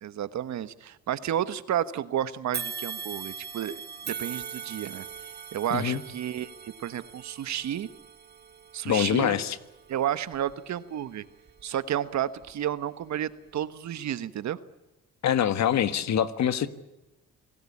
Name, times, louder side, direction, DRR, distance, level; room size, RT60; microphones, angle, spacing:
voice 1, 0.0-3.8 4.1-5.1 5.5-6.5 6.8-7.9 8.7-9.4 9.9-11.2 11.6-14.6, right 10 dB, 65° right, 13 dB, 1.3 m, -31 dB
sound 1, 2.5-11.8 12.4-12.5 13.5-13.6, right 6 dB, 35° right, 1.3 m, -41 dB
voice 2, 8.8-9.6 15.2-16.7, left 9 dB, 65° left, 12 dB, 1.5 m, -24 dB
27.0 x 17.5 x 8.6 m, 1.0 s
cardioid pair, 90°, 30 cm